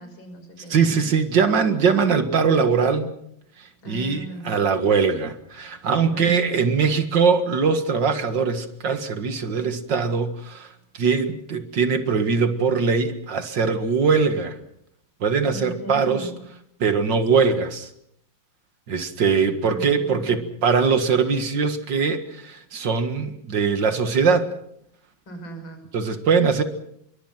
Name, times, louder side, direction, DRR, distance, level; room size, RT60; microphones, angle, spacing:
voice 1, 0.0-1.1 3.8-4.5 6.0-6.6 15.5-16.4 19.6-20.4 25.3-25.8, right 1 dB, 75° left, 5 dB, 6.4 m, -38 dB
voice 2, 0.7-3.1 3.6-14.6 15.2-16.3 16.8-17.9 18.9-24.5 25.9-26.6, right 5 dB, 65° right, 8 dB, 2.4 m, -21 dB
27.0 x 23.0 x 5.8 m, 0.71 s
omnidirectional pair, 2.1 m